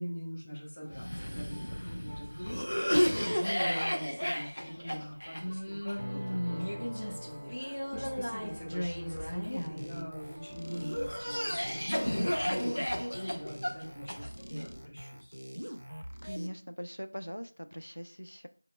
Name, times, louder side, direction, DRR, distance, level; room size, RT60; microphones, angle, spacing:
voice 1, 0.0-15.3, equal, 10° left, -7 dB, 0.4 m, -43 dB
Cough, 0.9-10.1 10.7-14.6, equal, 40° left, 0.8 m, -33 dB
sound 1, 6.0-13.2 13.6-14.3, equal, 45° right, 1.1 m, -46 dB
sound 2, 9.1-16.5, equal, 65° right, 0.6 m, -44 dB
voice 2, 16.2-18.5, equal, 90° left, 8 dB, 0.5 m, -41 dB
7.6 x 2.9 x 2.2 m, 0.40 s
figure-of-eight pair, 180°, 0 cm